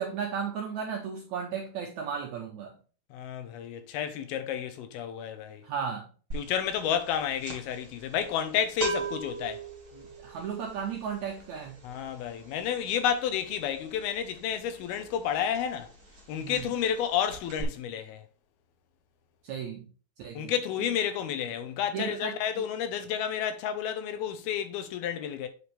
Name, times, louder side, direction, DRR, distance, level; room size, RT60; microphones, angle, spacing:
voice 1, 0.0-2.8 5.6-6.1 10.2-11.8 16.4-16.7 19.4-19.9 20.2-20.5 21.9-22.4, right 7 dB, 75° right, 1.7 m, -34 dB
voice 2, 3.1-5.6 6.3-9.7 11.8-15.9 16.3-18.2 20.3-25.5, left 9 dB, 80° left, 2.8 m, -31 dB
sound 1, 6.3-6.6 6.8-15.4 15.7-15.9 16.2-17.0 17.3-17.6, right 3 dB, 40° right, 2.5 m, -38 dB
8.1 x 5.0 x 3.3 m
omnidirectional pair, 4.4 m